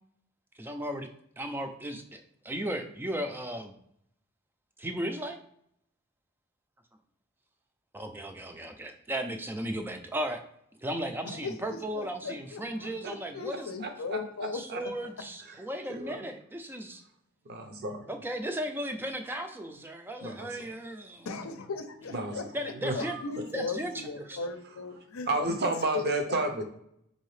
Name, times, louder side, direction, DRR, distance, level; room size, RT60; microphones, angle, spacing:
voice 1, 0.6-1.1 1.4-3.8 4.8-5.4 7.9-10.4 10.8-13.7 14.5-17.0 18.1-21.3 22.5-23.2 23.5-23.9 24.3-24.4, right 1 dB, 10° right, 6 dB, 0.3 m, -36 dB
voice 2, 11.2-14.9 21.2-25.5 25.9-26.4, left 4 dB, 80° left, 8 dB, 0.6 m, -38 dB
voice 3, 13.8-14.8 15.9-16.2 17.4-18.1 20.2-20.7 22.1-22.4 22.8-23.4 25.3-26.6, right 2 dB, 50° right, 5 dB, 0.7 m, -32 dB
4.8 x 2.7 x 3.2 m, 0.74 s
head